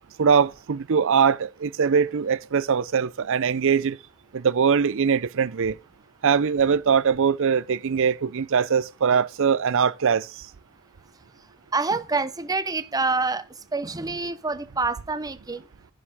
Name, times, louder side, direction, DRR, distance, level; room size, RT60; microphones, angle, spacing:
voice 1, 0.2-4.0 4.3-5.8 6.2-10.3, right 6 dB, 60° right, 0.5 m, -22 dB
voice 2, 11.7-13.4 13.7-15.6, right 3 dB, 15° right, 0.8 m, -26 dB
11.0 x 8.7 x 3.6 m
head